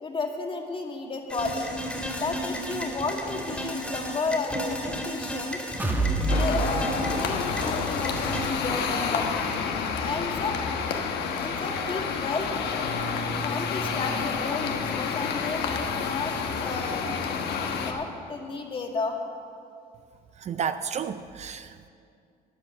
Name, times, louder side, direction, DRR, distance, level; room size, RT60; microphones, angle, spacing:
voice 1, 0.0-1.7 2.2-5.6 6.3-9.3 9.9-11.0 11.4-12.5 13.4-17.4 17.8-19.2, left 3 dB, 30° left, 2 dB, 1.8 m, -33 dB
sound 1, 1.3-8.5, equal, 5° left, 2.5 m, -34 dB
sound 2, 5.8-13.6 14.0-14.1 14.5-14.6, right 2 dB, 10° right, 1.4 m, -33 dB
sound 3, 6.3-17.9, left 6 dB, 75° left, 1.3 m, -29 dB
voice 2, 20.4-21.9, right 7 dB, 45° right, 11 dB, 0.5 m, -32 dB
13.0 x 9.8 x 7.0 m, 2.3 s
cardioid pair, 110°, 17 cm